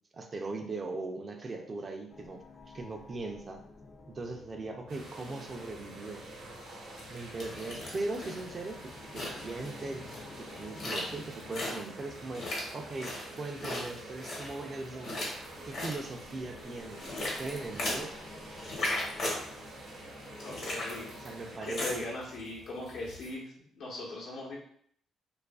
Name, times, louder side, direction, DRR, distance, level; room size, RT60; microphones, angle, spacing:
voice 1, 0.1-2.4 2.7-3.6 4.1-6.3 7.1-13.1 13.4-15.3 15.6-17.0 17.4-18.2 21.2-22.1, right 2 dB, 35° right, 3 dB, 0.4 m, -39 dB
sound 1, 2.1-21.4, left 3 dB, 35° left, 0.4 m, -53 dB
sound 2, 4.9-21.6, right 2 dB, 85° right, 0.8 m, -48 dB
sound 3, 7.0-23.3, left 1 dB, 65° left, 1.0 m, -39 dB
voice 2, 20.4-21.1 21.6-24.6, left 2 dB, 80° left, -4 dB, 0.9 m, -39 dB
2.6 x 2.4 x 2.3 m, 0.66 s
cardioid pair, 90°, 0 cm